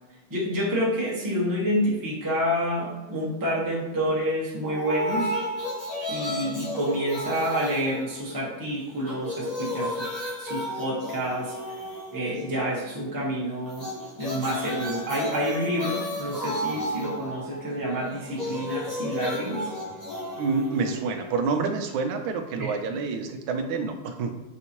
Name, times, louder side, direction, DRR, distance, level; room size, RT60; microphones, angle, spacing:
voice 1, 0.3-5.4 6.1-10.1 10.4-11.5 12.1-13.9 14.2-19.6 22.6-22.7, equal, 30° right, -5 dB, 0.3 m, -28 dB
sound 1, 4.6-8.6 8.9-12.7 13.6-21.6, left 1 dB, 25° left, 1.1 m, -33 dB
voice 2, 20.4-24.4, right 4 dB, 75° right, 5 dB, 1.2 m, -28 dB
5.6 x 2.7 x 2.9 m, 1.0 s
omnidirectional pair, 2.4 m